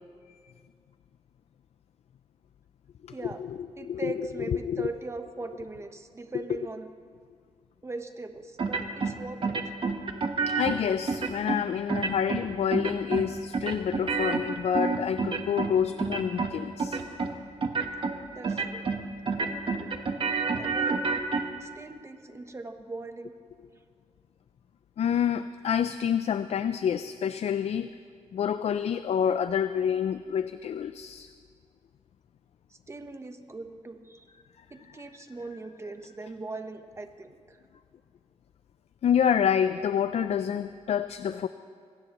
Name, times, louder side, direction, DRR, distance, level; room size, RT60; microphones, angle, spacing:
voice 1, 3.1-3.4 3.8-6.9 7.8-9.6 18.3-18.9 19.4-19.9 20.5-21.0 21.6-23.3 32.7-34.3 34.7-37.6, right 3 dB, 25° right, 7 dB, 1.0 m, -40 dB
voice 2, 3.8-4.9 10.5-17.0 19.7-19.8 25.0-27.9 28.3-31.3 39.0-41.5, left 8 dB, 65° left, 11 dB, 0.4 m, -28 dB
sound 1, 8.6-9.1 9.4-10.8 11.1-11.6 11.9-12.4 12.7-13.3 13.5-15.7 16.0-16.5 16.8-17.3 17.6-18.1 18.4-19.0 19.3-21.4, right 4 dB, 45° right, 1.2 m, -28 dB
26.0 x 18.0 x 3.0 m, 2.1 s
wide cardioid pair, 130°, 12 cm